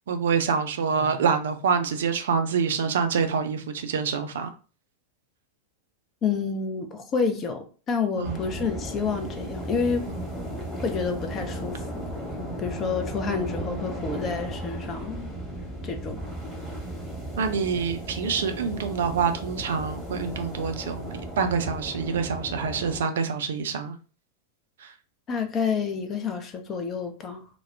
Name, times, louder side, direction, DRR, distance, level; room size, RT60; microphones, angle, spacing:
voice 1, 0.1-4.5 8.2-8.4 10.1-10.3 12.3-12.5 17.3-24.0 24.8-24.9, right 6 dB, 60° right, 0.4 m, -26 dB
voice 2, 6.2-10.1 10.8-12.0 12.6-15.3 15.8-16.2 25.3-27.5, left 5 dB, 30° left, 0.5 m, -29 dB
sound 1, 8.2-23.0, right 1 dB, ahead, 1.0 m, -35 dB
2.2 x 2.0 x 3.3 m
figure-of-eight pair, 90°, 0 cm